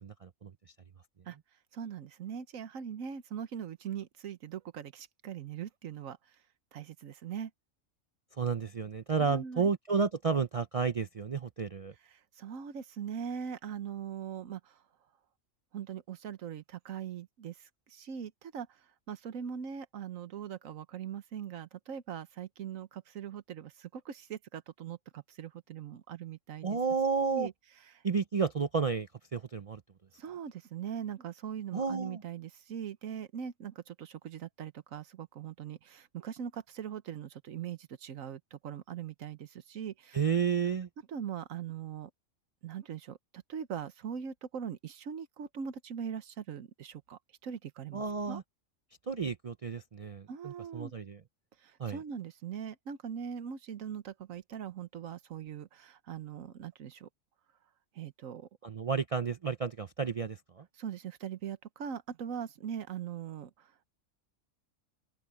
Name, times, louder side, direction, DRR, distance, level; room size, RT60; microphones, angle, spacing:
voice 1, 0.0-0.5 8.4-11.9 26.6-27.5 28.0-29.8 31.7-32.2 40.1-40.9 47.9-48.4 49.1-51.2 51.8-52.0 58.6-60.6, right 5 dB, 55° right, 0.3 m, -31 dB
voice 2, 1.7-6.4 6.7-7.5 9.2-9.7 12.1-14.8 15.7-26.8 27.2-27.5 27.9-28.0 30.2-40.2 41.1-42.1 42.6-48.4 50.3-50.9 51.6-57.1 57.9-58.5 60.8-63.9, right 8 dB, 90° right, 1.4 m, -41 dB
open air
omnidirectional pair, 1.4 m